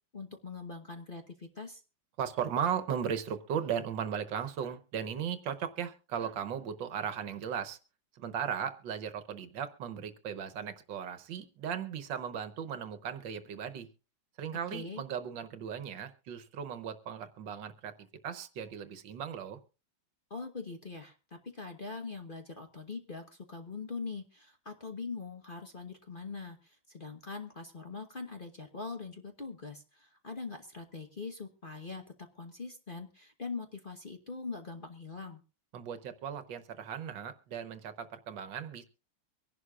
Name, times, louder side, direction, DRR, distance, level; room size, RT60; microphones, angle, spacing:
voice 1, 0.1-1.8 14.7-15.0 20.3-32.0 32.3-35.4, left 4 dB, 30° left, 4 dB, 1.1 m, -42 dB
voice 2, 2.2-7.8 8.1-13.9 14.4-19.6 35.7-38.8, right 8 dB, 70° right, 10 dB, 1.6 m, -37 dB
24.0 x 11.0 x 2.4 m, 0.33 s
omnidirectional pair, 2.1 m